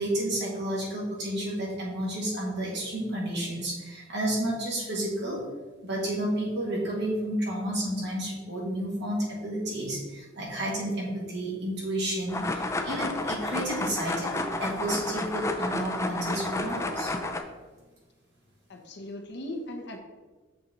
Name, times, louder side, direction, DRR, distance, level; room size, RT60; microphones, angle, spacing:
voice 1, 0.0-5.4 5.8-17.1, right 1 dB, 60° right, -4 dB, 1.9 m, -31 dB
sound 1, 12.3-17.4, left 2 dB, 15° left, 0.4 m, -31 dB
voice 2, 18.7-20.0, left 1 dB, 60° left, 3 dB, 0.8 m, -38 dB
6.8 x 4.3 x 3.9 m, 1.3 s
head